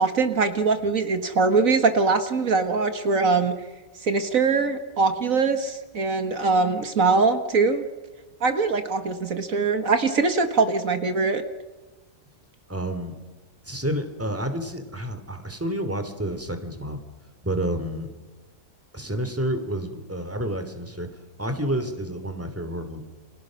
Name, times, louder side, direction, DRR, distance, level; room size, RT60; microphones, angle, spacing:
voice 1, 0.0-3.5 4.0-7.9 8.4-11.4, right 4 dB, 70° right, 8 dB, 2.0 m, -22 dB
voice 2, 12.7-13.1 13.6-17.0 17.4-18.1 18.9-21.1 21.4-23.0, right 1 dB, 10° right, 8 dB, 2.9 m, -29 dB
30.0 x 27.0 x 6.4 m, 1.2 s
omnidirectional pair, 1.5 m